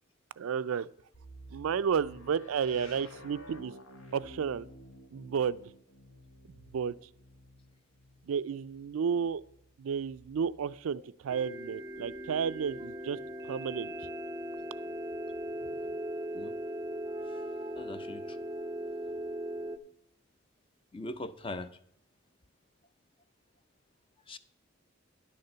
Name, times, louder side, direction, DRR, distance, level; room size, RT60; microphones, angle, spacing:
voice 1, 0.4-0.9 1.5-3.7 4.1-4.7 5.1-5.6 6.7-6.9 8.3-9.4 9.8-13.9, right 7 dB, 90° right, 0.4 m, -32 dB
sound 1, 1.1-11.0 12.0-13.0, equal, 80° left, 1.5 m, -53 dB
sound 2, 11.3-19.8, right 1 dB, 20° right, 0.6 m, -38 dB
voice 2, 17.8-18.2 20.9-21.7 24.3-24.4, left 2 dB, 25° left, 0.5 m, -40 dB
11.0 x 6.6 x 5.6 m
head